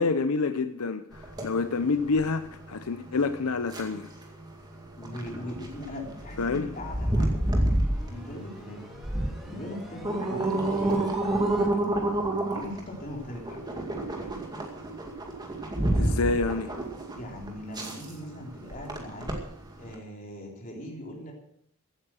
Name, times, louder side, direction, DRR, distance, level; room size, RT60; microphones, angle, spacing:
voice 1, 0.0-4.1 6.4-6.7 16.0-16.7, left 4 dB, 85° left, 11 dB, 0.7 m, -27 dB
sound 1, 1.1-19.9, right 1 dB, 20° right, 2.2 m, -30 dB
voice 2, 4.9-7.6 8.1-8.9 9.4-11.2 12.5-13.6 17.2-19.4 19.8-21.3, left 1 dB, 35° left, -1 dB, 3.7 m, -40 dB
sound 2, 5.2-11.7, equal, ahead, 2.1 m, -45 dB
15.5 x 8.9 x 6.3 m, 0.69 s
head